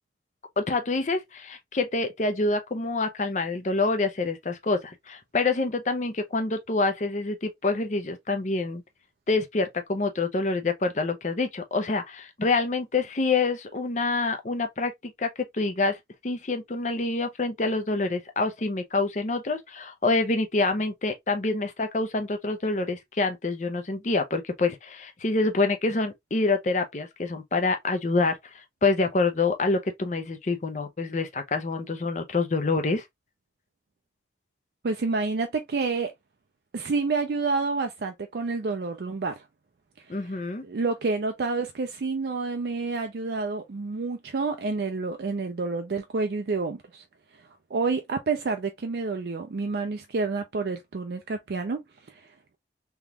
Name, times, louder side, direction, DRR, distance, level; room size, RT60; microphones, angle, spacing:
voice 1, 0.6-8.8 9.3-16.0 16.2-33.0 40.1-40.6, left 3 dB, 40° left, 0.6 m, -26 dB
voice 2, 34.8-36.1 36.7-39.5 40.0-40.3 40.6-47.0 47.3-51.8 52.1-52.3, right 4 dB, 60° right, 0.4 m, -29 dB
3.5 x 2.9 x 2.3 m
head